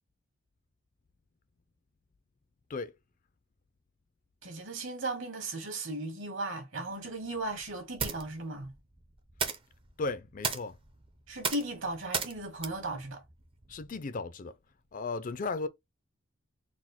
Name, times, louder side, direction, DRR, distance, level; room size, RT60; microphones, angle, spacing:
voice 1, 4.4-8.7 11.3-13.2, right 2 dB, 60° right, 1.5 m, -36 dB
sound 1, 6.8-14.1, right 6 dB, 25° right, 0.5 m, -38 dB
voice 2, 10.0-10.8 13.7-14.6 14.9-15.7, left 3 dB, 40° left, 0.4 m, -35 dB
4.2 x 2.1 x 4.2 m
head